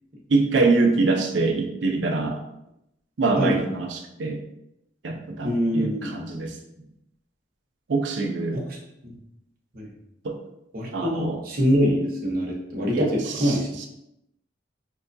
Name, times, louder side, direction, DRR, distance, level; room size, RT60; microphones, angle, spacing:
voice 1, 0.3-2.4 3.2-4.4 5.0-6.6 7.9-8.6 10.2-10.4 10.9-11.4 12.9-13.6, right 3 dB, 70° right, 2 dB, 0.5 m, -24 dB
voice 2, 5.4-6.2 8.5-8.6 9.0-9.2 9.7-9.9 10.7-13.9, equal, 50° right, -2 dB, 0.9 m, -24 dB
5.5 x 2.2 x 2.6 m, 0.83 s
head